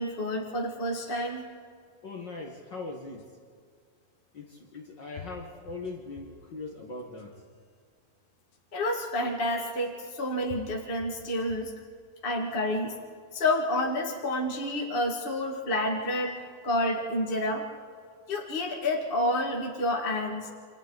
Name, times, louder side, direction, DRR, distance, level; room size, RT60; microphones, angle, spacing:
voice 1, 0.0-1.4 8.7-11.7 12.2-12.9 13.3-17.6 18.3-20.5, left 1 dB, 30° left, -1 dB, 1.1 m, -29 dB
voice 2, 2.0-3.2 4.3-7.4, left 3 dB, 55° left, 1 dB, 1.2 m, -40 dB
sound 1, 3.2-3.3 4.5-4.6 5.2-6.5 7.0-7.6 8.5-8.6 9.8-9.9 10.5-11.8 12.3-12.9, left 6 dB, 75° left, 3.4 m, -48 dB
28.0 x 26.5 x 4.0 m, 2.2 s
omnidirectional pair, 4.2 m